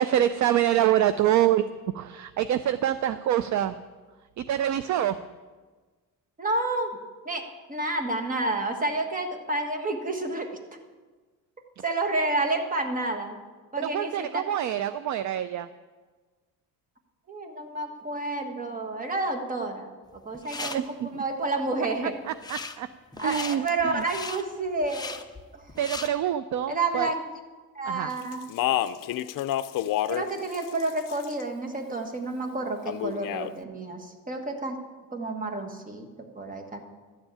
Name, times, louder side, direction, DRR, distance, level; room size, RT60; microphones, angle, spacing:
voice 1, 0.0-1.6 1.9-3.8 4.4-5.2 13.8-15.7 20.6-21.1 22.3-22.9 23.2-24.0 25.8-27.1 27.8-28.1, right 11 dB, 50° right, 13 dB, 0.4 m, -26 dB
voice 2, 6.4-6.9 7.2-7.4 7.7-10.5 11.8-13.4 13.7-14.4 17.3-19.9 20.2-22.2 23.2-25.2 25.5-25.6 26.7-27.2 27.7-28.4 30.1-34.8 35.1-36.8, right 2 dB, 20° right, 5 dB, 1.4 m, -30 dB
sound 1, 20.2-20.8 22.3-22.8 23.1-26.1, left 4 dB, 10° left, 0.6 m, -37 dB
Speech, 28.3-30.3 30.5-31.4 32.9-33.5, left 12 dB, 60° left, 0.6 m, -28 dB
12.0 x 7.2 x 8.8 m, 1.4 s
cardioid pair, 150°, 37 cm